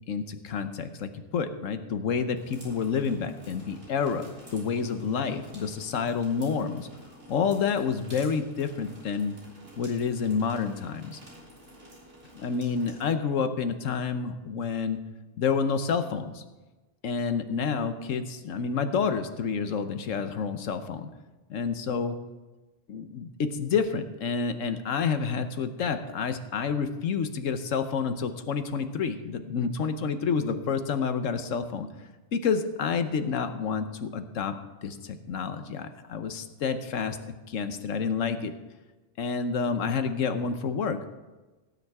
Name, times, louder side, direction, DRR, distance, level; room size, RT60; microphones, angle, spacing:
voice 1, 0.1-6.9 7.3-9.4 9.8-11.2 12.3-15.0 15.4-16.4 17.0-21.1 21.5-22.2 22.9-31.9 32.3-34.5 34.8-37.2 37.5-38.5 39.2-41.0, left 5 dB, 90° left, 9 dB, 1.3 m, -29 dB
sound 1, 2.3-13.0, equal, 65° right, 3.6 m, -50 dB
17.5 x 9.3 x 3.6 m, 1.2 s
omnidirectional pair, 1.3 m